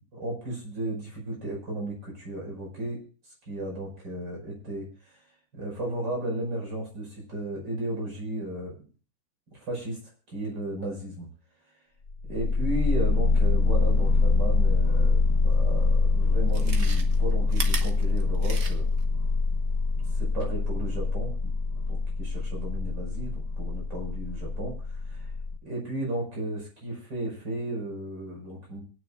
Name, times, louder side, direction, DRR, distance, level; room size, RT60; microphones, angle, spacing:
voice 1, 0.1-3.0 3.5-5.2 5.5-8.7 9.5-11.3 12.2-18.9 20.1-21.5 21.9-25.3 25.6-28.8, right 1 dB, 60° right, -1 dB, 6.3 m, -34 dB
sound 1, 12.1-25.6, left 3 dB, 55° left, 1.7 m, -24 dB
Chewing mastication, 15.6-15.7 16.4-19.0 19.4-19.5, right 4 dB, 40° right, 1.4 m, -37 dB
26.0 x 9.3 x 2.5 m, 0.38 s
omnidirectional pair, 2.2 m